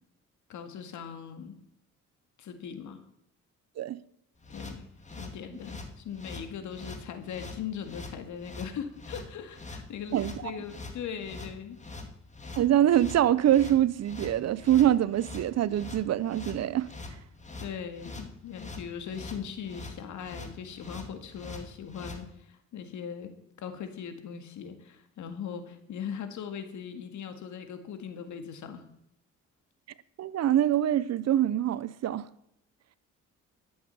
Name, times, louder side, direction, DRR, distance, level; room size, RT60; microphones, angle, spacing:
voice 1, 0.5-1.6 2.4-3.0 4.5-4.9 5.1-11.8 17.6-23.3 23.6-28.8, left 7 dB, 75° left, 2.0 m, -40 dB
sound 1, 4.4-22.2, left 3 dB, 25° left, 2.1 m, -43 dB
voice 2, 12.5-16.9 30.2-32.3, right 11 dB, 60° right, 0.7 m, -24 dB
12.5 x 7.9 x 7.0 m
cardioid pair, 90°, 30 cm